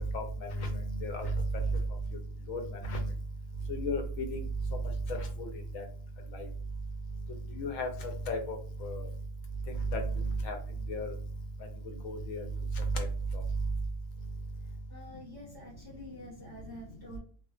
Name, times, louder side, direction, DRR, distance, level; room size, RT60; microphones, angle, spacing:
voice 1, 0.5-1.6 2.5-3.0 3.7-4.4 5.1-5.8 6.3-6.5 7.5-9.1 9.9-10.0 10.4-10.6 10.9-11.1 12.0-12.4 12.8-13.1, left 1 dB, 80° left, 5 dB, 1.0 m, -34 dB
voice 2, 14.9-17.2, equal, 25° right, -6 dB, 0.6 m, -47 dB
2.4 x 2.2 x 2.3 m, 0.43 s
omnidirectional pair, 1.4 m